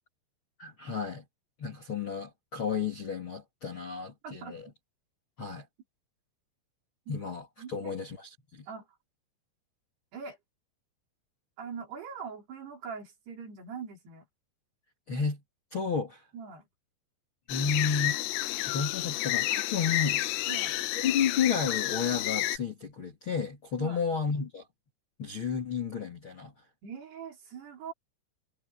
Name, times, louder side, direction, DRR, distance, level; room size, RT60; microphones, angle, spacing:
voice 1, 0.6-1.2 1.6-4.7 5.4-5.7 7.1-8.7 15.1-15.4 15.7-16.2 17.5-18.2 18.7-20.2 20.9-24.6 25.2-26.5, left 6 dB, 35° left, 2.3 m, -32 dB
voice 2, 4.2-4.7 7.1-7.2 7.6-8.0 8.7-8.9 10.1-10.4 11.6-14.3 16.3-16.7 20.5-20.8 23.8-24.0 26.8-27.9, right 6 dB, 55° right, 5.9 m, -42 dB
sound 1, 17.5-22.6, left 15 dB, 90° left, 3.7 m, -30 dB
omnidirectional pair, 5.7 m